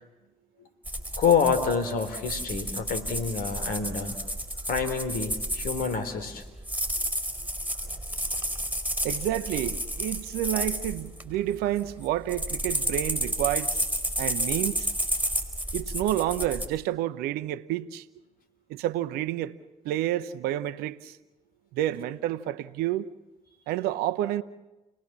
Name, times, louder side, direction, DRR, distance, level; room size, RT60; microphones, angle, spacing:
sound 1, 0.8-6.0 6.6-11.2 11.8-16.7, equal, 10° right, 4.4 m, -31 dB
voice 1, 1.2-4.2 4.7-6.4, left 6 dB, 65° left, 3.4 m, -27 dB
voice 2, 9.0-13.9 14.2-14.9 15.7-18.0 18.7-19.5 19.8-21.2 21.7-23.1 23.7-24.4, right 13 dB, 75° right, 0.8 m, -29 dB
30.0 x 19.5 x 7.4 m
hypercardioid pair, 50°, 16 cm